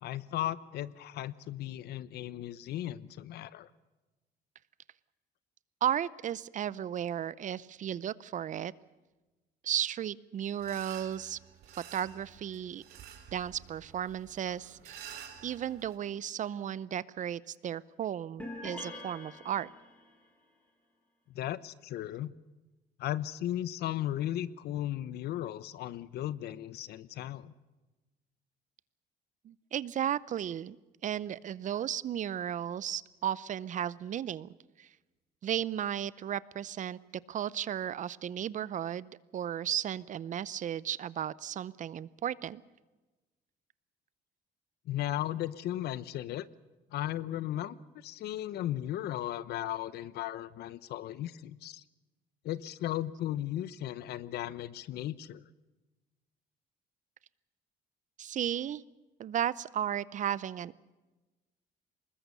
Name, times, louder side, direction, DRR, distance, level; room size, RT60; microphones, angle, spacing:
voice 1, 0.0-3.7 21.3-22.3 23.0-27.5 44.9-46.5 46.9-51.8 52.4-55.4, left 13 dB, 70° left, 17 dB, 0.9 m, -36 dB
voice 2, 5.8-8.7 9.6-11.4 11.7-12.8 13.3-19.7 29.4-30.8 31.0-34.5 34.8-34.9 35.4-37.0 37.3-42.6 58.2-58.8 59.2-60.8, right 10 dB, 50° right, 20 dB, 0.7 m, -34 dB
sound 1, 10.6-15.9, right 9 dB, 70° right, 3.7 m, -50 dB
sound 2, 18.4-20.2, left 1 dB, 10° left, 6.3 m, -44 dB
24.5 x 20.5 x 6.8 m, 1.2 s
cardioid pair, 110°, 17 cm